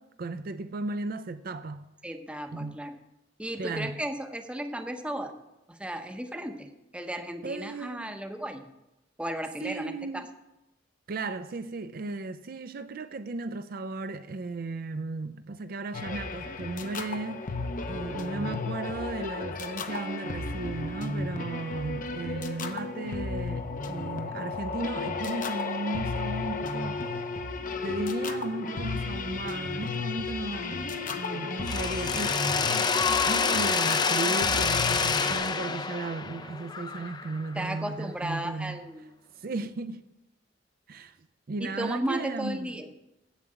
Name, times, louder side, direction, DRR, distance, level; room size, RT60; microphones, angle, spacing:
voice 1, 0.0-1.8 2.5-2.8 3.6-4.0 7.4-8.1 9.6-10.3 11.1-17.5 17.9-27.2 27.8-32.4 33.3-38.8 39.4-40.1 40.9-41.2 41.5-42.8, right 3 dB, 55° right, 0.5 m, -35 dB
voice 2, 2.0-2.9 3.4-5.3 5.7-8.6 9.2-10.2 37.5-39.1 41.6-42.9, right 1 dB, 5° right, 0.7 m, -34 dB
sound 1, 15.9-35.3, left 3 dB, 50° left, 0.8 m, -33 dB
Mechanisms, 31.7-37.5, left 5 dB, 25° left, 0.5 m, -27 dB
8.2 x 7.3 x 7.7 m
head